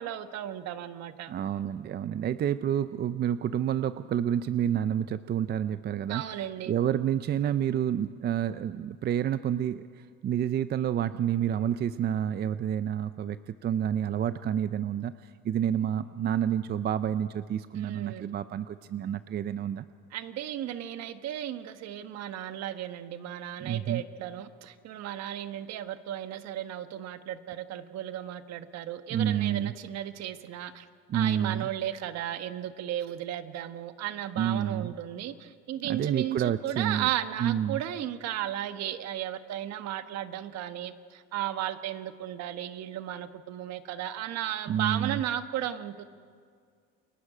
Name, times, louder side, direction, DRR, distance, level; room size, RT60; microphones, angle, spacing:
voice 1, 0.0-1.3 6.1-6.7 17.7-18.3 20.1-30.9 31.1-46.0, right 11 dB, 60° right, 9 dB, 1.4 m, -35 dB
voice 2, 1.3-6.2 6.7-19.9 23.6-24.0 29.1-29.7 31.1-31.7 34.4-34.9 35.8-37.1 37.4-37.8 44.7-45.2, right 9 dB, 35° right, 12 dB, 0.5 m, -29 dB
29.5 x 22.0 x 5.0 m, 2.1 s
cardioid pair, 120°, 30 cm